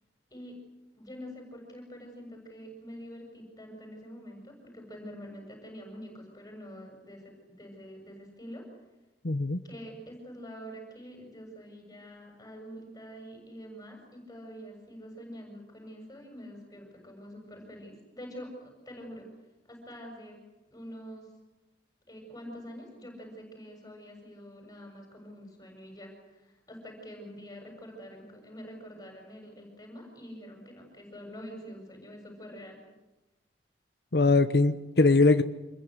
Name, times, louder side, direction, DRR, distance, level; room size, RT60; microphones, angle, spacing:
voice 1, 0.3-0.6 1.0-8.7 9.6-19.3 19.6-20.4 20.7-21.3 22.1-32.8, equal, 20° left, 2 dB, 7.3 m, -46 dB
voice 2, 9.2-9.6 34.1-35.4, left 3 dB, 65° left, 8 dB, 1.0 m, -21 dB
27.0 x 22.0 x 8.0 m, 1.0 s
head